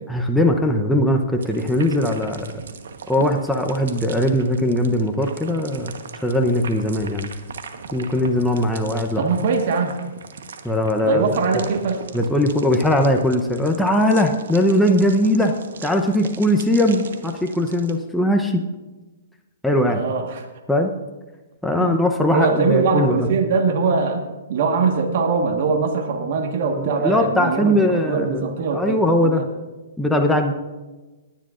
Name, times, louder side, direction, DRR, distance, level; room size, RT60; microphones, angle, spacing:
voice 1, 0.1-2.5 3.1-7.3 7.9-9.2 10.6-11.2 11.5-11.6 12.1-15.5 15.8-18.6 19.6-20.0 20.7-20.9 21.6-23.3 26.8-28.4 28.7-29.4 30.0-30.5, left 1 dB, ahead, 2 dB, 0.8 m, -20 dB
sound 1, 1.4-17.9, right 5 dB, 75° right, 1.2 m, -39 dB
voice 2, 9.2-9.9 11.0-12.0 19.9-20.4 21.8-21.9 22.3-24.2 24.5-29.4, right 4 dB, 55° right, 4 dB, 1.5 m, -22 dB
20.0 x 10.0 x 2.5 m, 1.2 s
hypercardioid pair, 140°, 0 cm